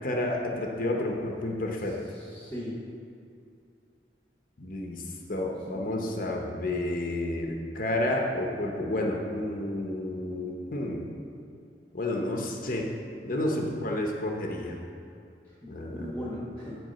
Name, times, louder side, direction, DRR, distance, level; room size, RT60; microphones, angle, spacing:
voice 1, 0.0-2.0 4.6-5.0 5.3-11.1 11.9-12.9 13.2-14.8 15.7-16.3, left 1 dB, 50° left, 1 dB, 0.8 m, -30 dB
voice 2, 2.1-2.8 5.7-6.2 15.6-15.7 16.0-16.8, left 1 dB, 10° left, -6 dB, 1.0 m, -38 dB
7.8 x 4.8 x 6.6 m, 2.5 s
head